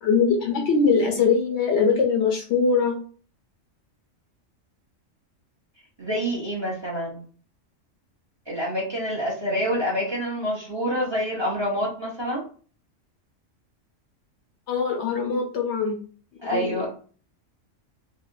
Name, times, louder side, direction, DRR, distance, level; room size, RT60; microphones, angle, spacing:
voice 1, 0.0-3.0 10.8-11.0 14.7-16.0 16.5-16.9, left 5 dB, 65° left, 3 dB, 0.9 m, -22 dB
voice 2, 6.0-7.2 8.5-12.4 16.4-16.9, equal, 25° right, -3 dB, 0.8 m, -27 dB
3.8 x 2.0 x 2.5 m, 0.41 s
omnidirectional pair, 1.3 m